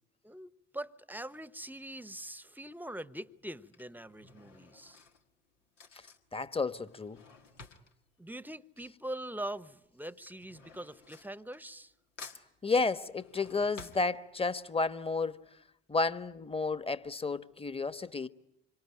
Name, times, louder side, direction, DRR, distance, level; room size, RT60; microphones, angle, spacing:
voice 1, 0.2-5.0 8.2-11.9, right 1 dB, 5° right, 1.0 m, -43 dB
Drawer open or close / Cutlery silverware, 2.2-2.6 3.4-9.3 9.5-11.9 12.2-14.7 15.1-15.2 15.4-15.5, left 4 dB, 85° left, 1.7 m, -54 dB
voice 2, 6.3-7.2 12.6-15.4 15.9-18.3, left 3 dB, 15° left, 1.2 m, -32 dB
26.5 x 25.0 x 9.0 m
hypercardioid pair, 55°, 36 cm